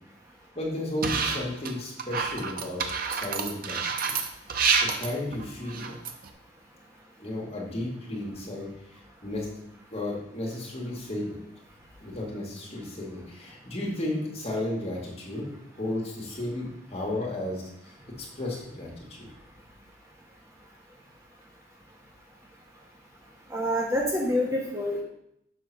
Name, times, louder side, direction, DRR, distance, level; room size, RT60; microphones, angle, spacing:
voice 1, 0.6-4.1 4.5-5.9 7.2-9.5 9.9-11.4 12.0-15.5 15.7-19.3, left 1 dB, 35° left, -3 dB, 1.9 m, -34 dB
sound 1, 1.0-1.7 2.0-6.3, right 5 dB, 50° right, 0.7 m, -28 dB
voice 2, 23.5-25.0, equal, 15° right, -2 dB, 0.9 m, -27 dB
6.5 x 3.9 x 6.0 m, 0.77 s
head